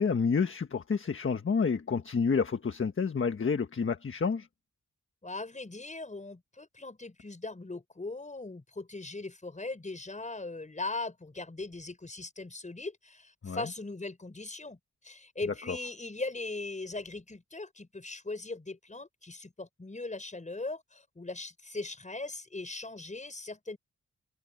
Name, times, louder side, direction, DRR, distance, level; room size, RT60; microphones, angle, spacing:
voice 1, 0.0-4.5 13.4-13.7 15.7-15.8, left 5 dB, 45° left, 1.4 m, -29 dB
voice 2, 5.2-23.8, left 3 dB, 25° left, 6.3 m, -39 dB
wide cardioid pair, 105°, 30 cm